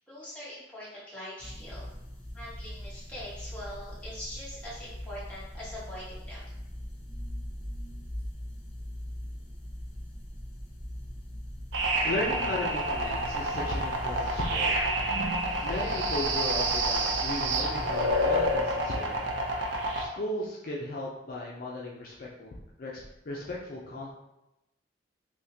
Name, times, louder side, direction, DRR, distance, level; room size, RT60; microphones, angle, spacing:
voice 1, 0.1-1.8 2.3-6.4, left 1 dB, 5° left, -10 dB, 1.3 m, -42 dB
sound 1, 1.4-18.6, equal, 30° left, 0.9 m, -41 dB
sound 2, 11.7-20.0, right 1 dB, 80° right, 0.5 m, -28 dB
voice 2, 12.0-14.8 15.6-19.3 20.0-22.5 22.8-24.1, left 1 dB, 50° left, -4 dB, 0.5 m, -36 dB
3.6 x 2.8 x 2.7 m, 0.91 s
head